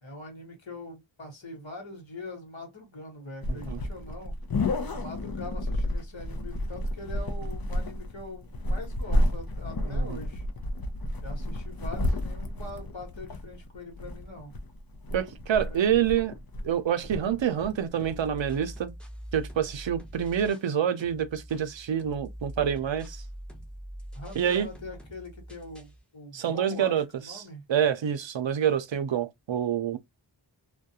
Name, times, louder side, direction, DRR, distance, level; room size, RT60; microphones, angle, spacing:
voice 1, 0.0-4.3 4.9-10.4 11.2-14.5 15.6-15.8 24.1-27.7, left 2 dB, 70° left, 1.2 m, -43 dB
sound 1, 3.4-18.2, left 1 dB, 50° left, 0.6 m, -31 dB
voice 2, 3.5-3.8 9.9-10.2 15.1-16.3 16.6-18.9 19.3-23.2 24.4-24.7 26.3-27.4 27.7-30.0, right 9 dB, 70° right, 0.5 m, -27 dB
sound 2, 18.0-20.7 21.0-26.0, equal, ahead, 0.7 m, -44 dB
2.3 x 2.2 x 2.7 m
wide cardioid pair, 45°, 48 cm